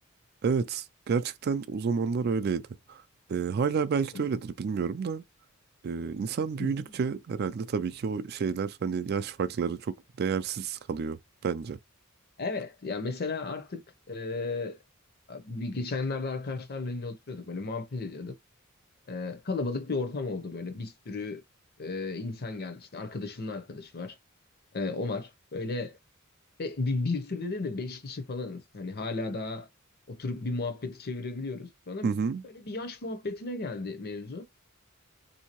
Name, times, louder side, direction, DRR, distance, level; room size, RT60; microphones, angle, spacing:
voice 1, 0.4-3.0 3.3-5.2 5.8-11.2 11.4-11.8 32.0-32.4, right 5 dB, 50° right, 0.3 m, -30 dB
voice 2, 6.6-7.0 12.4-13.8 14.1-14.8 15.3-18.4 19.1-21.4 21.8-24.2 24.7-25.9 26.6-29.7 30.1-32.1 32.4-34.4, left 3 dB, 45° left, 0.7 m, -34 dB
3.5 x 2.7 x 2.9 m
head